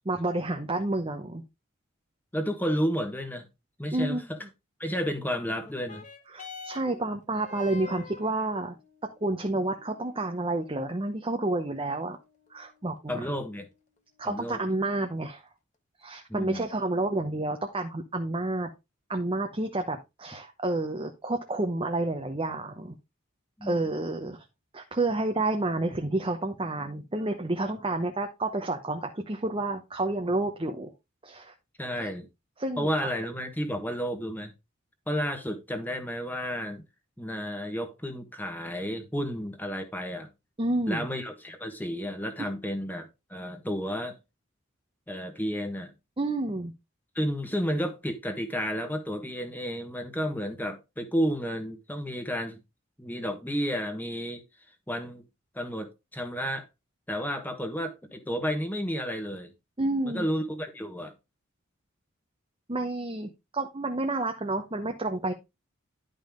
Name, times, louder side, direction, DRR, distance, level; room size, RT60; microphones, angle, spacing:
voice 1, 0.0-1.4 3.9-4.2 6.3-8.7 9.2-12.2 12.5-13.2 14.2-15.4 16.0-18.7 19.1-23.0 23.6-24.4 24.7-30.9 31.2-31.5 32.6-32.9 40.6-41.1 42.4-42.5 46.2-46.7 59.8-60.3 62.7-65.3, right 2 dB, 25° right, 0.9 m, -30 dB
voice 2, 2.3-3.5 3.8-4.4 4.8-6.0 13.1-13.7 14.2-14.6 16.3-16.6 23.6-23.8 31.8-32.3 32.8-34.5 35.1-36.8 37.2-40.3 40.9-44.2 45.1-45.9 47.1-52.6 53.0-54.4 54.9-55.2 55.5-56.7 57.1-59.5 60.0-61.1, equal, 10° left, 1.5 m, -31 dB
sound 1, 5.6-14.6 15.4-15.5, left 4 dB, 35° left, 1.2 m, -49 dB
11.0 x 5.3 x 3.7 m
head